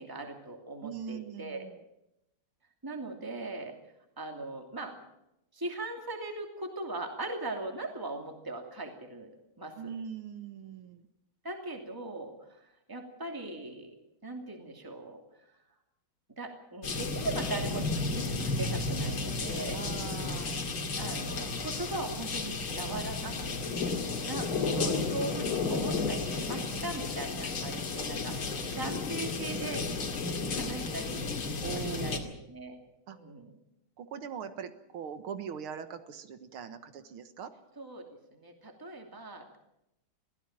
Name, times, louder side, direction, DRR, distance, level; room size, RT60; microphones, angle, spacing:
voice 1, 0.0-1.7 2.8-3.8 4.2-4.9 5.5-9.3 9.6-9.9 11.4-13.9 14.2-15.5 16.4-19.8 21.0-23.7 24.2-29.9 30.5-31.2 31.7-32.2 32.5-32.8 33.1-33.5 37.8-38.1 38.3-39.6, right 2 dB, 10° right, 3 dB, 2.7 m, -39 dB
voice 2, 0.8-1.7 9.8-11.1 19.7-20.5 31.6-32.2 33.1-33.2 34.0-37.5, right 7 dB, 85° right, 10 dB, 2.2 m, -41 dB
sound 1, 16.8-32.2, left 3 dB, 75° left, 3.2 m, -33 dB
22.5 x 15.5 x 8.9 m, 0.86 s
omnidirectional pair, 2.3 m